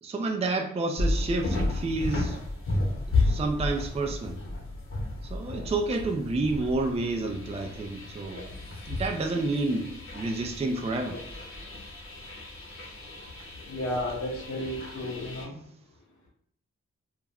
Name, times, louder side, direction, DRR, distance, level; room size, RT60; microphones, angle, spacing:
voice 1, 0.0-2.4 3.2-4.4 5.2-8.4 8.9-11.2, right 2 dB, 20° right, 3 dB, 0.4 m, -29 dB
sound 1, 1.0-15.5, left 2 dB, 45° left, 0.9 m, -33 dB
voice 2, 13.7-15.6, left 1 dB, 75° left, -2 dB, 1.0 m, -33 dB
2.4 x 2.1 x 3.4 m, 0.67 s
cardioid pair, 45°, 30 cm